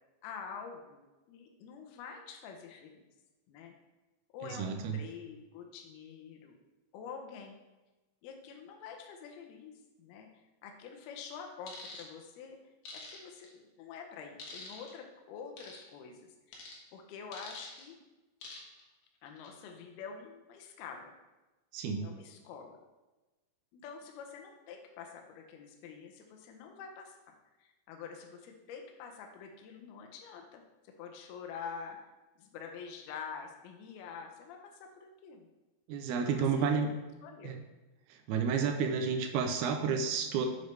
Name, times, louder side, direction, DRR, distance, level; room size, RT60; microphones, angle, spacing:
voice 1, 0.2-1.0 1.3-3.0 3.5-3.7 4.3-6.5 6.9-7.6 8.2-9.7 10.0-10.3 10.6-12.6 12.9-16.6 16.9-18.0 19.2-21.1 22.0-22.8 23.7-27.2 27.6-32.0 32.4-35.5 36.2-36.8 37.2-37.6, left 6 dB, 80° left, 3 dB, 2.7 m, -47 dB
voice 2, 4.4-5.0 21.7-22.1 35.9-36.9 37.4-37.6 38.1-40.5, right 6 dB, 85° right, 5 dB, 2.7 m, -31 dB
sound 1, 11.7-12.0 12.8-13.5 14.4-14.9 15.6-15.8 16.5-16.8 17.3-17.8 18.4-18.8 19.3-19.5, left 3 dB, 60° left, 2.4 m, -46 dB
8.3 x 6.4 x 3.3 m, 1.1 s
omnidirectional pair, 4.6 m